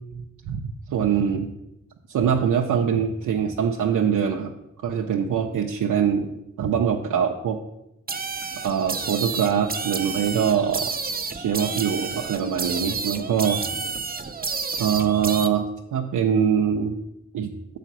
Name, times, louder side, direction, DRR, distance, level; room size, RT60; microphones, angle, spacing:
voice 1, 0.1-1.5 2.1-4.5 4.8-6.3 6.6-7.6 8.6-11.0 11.3-13.6 14.8-17.0 17.3-17.5, right 7 dB, 85° right, 1 dB, 0.6 m, -23 dB
sound 1, 8.1-15.5, right 5 dB, 30° right, 0.6 m, -30 dB
6.8 x 4.9 x 6.0 m, 0.88 s
cardioid pair, 55°, 30 cm